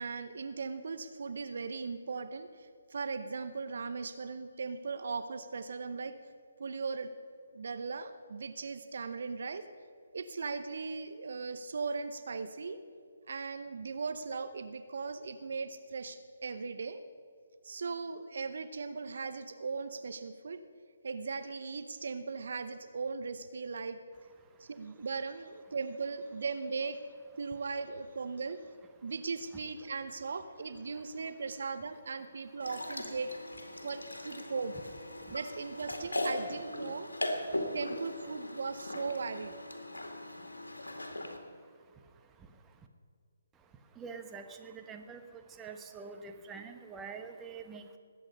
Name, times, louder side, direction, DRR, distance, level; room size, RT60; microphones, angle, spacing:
voice 1, 0.0-6.2 6.6-7.1 7.5-9.6 10.1-12.8 13.3-17.0 17.6-20.6 21.0-24.0 24.6-27.0 27.4-28.6 29.0-33.3 33.8-34.7 35.3-37.1 37.7-39.6, right 4 dB, 60° right, 11 dB, 0.8 m, -38 dB
voice 2, 24.4-24.9 29.0-29.1 30.9-31.3 33.7-33.9 34.4-34.5 35.2-35.4 37.5-37.8 39.8-42.9 43.5-48.0, right 5 dB, 15° right, 5 dB, 1.1 m, -49 dB
sound 1, 32.6-41.4, left 1 dB, 85° left, 2.0 m, -39 dB
20.0 x 8.9 x 5.4 m, 2.2 s
figure-of-eight pair, 145°, 0 cm